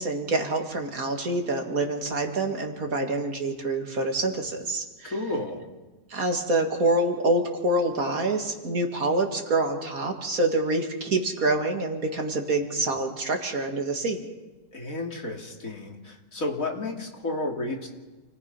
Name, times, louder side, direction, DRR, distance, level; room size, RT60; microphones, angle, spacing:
voice 1, 0.0-5.1 6.1-14.2, right 2 dB, 60° right, 3 dB, 2.7 m, -26 dB
voice 2, 5.1-5.6 14.7-17.9, left 2 dB, 60° left, 0 dB, 3.3 m, -32 dB
29.0 x 19.0 x 5.5 m, 1.2 s
omnidirectional pair, 1.7 m